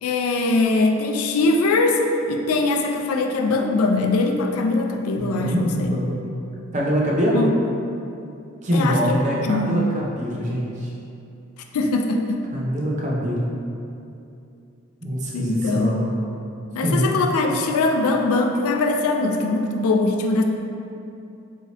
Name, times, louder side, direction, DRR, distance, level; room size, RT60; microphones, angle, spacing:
voice 1, 0.0-2.0 2.3-5.9 7.3-7.5 8.7-9.2 9.4-9.7 11.7-12.4 15.3-16.0 16.7-20.4, left 3 dB, 90° left, 4 dB, 0.4 m, -21 dB
voice 2, 5.2-6.3 6.7-7.5 8.6-10.9 12.5-13.5 15.0-16.1 16.8-17.1, equal, 35° right, -4 dB, 0.5 m, -23 dB
4.2 x 2.7 x 2.9 m, 2.7 s
head